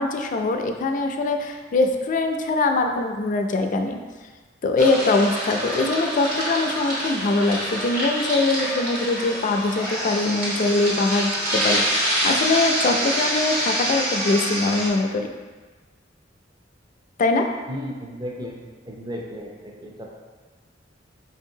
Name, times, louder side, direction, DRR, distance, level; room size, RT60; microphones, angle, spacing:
voice 1, 0.0-4.0 4.6-15.3 17.2-17.5, left 3 dB, 45° left, 4 dB, 0.3 m, -22 dB
sound 1, 4.8-14.9, equal, 55° right, 1.3 m, -26 dB
voice 2, 17.7-20.1, equal, 20° right, -2 dB, 0.5 m, -35 dB
5.0 x 2.7 x 2.7 m, 1.3 s
head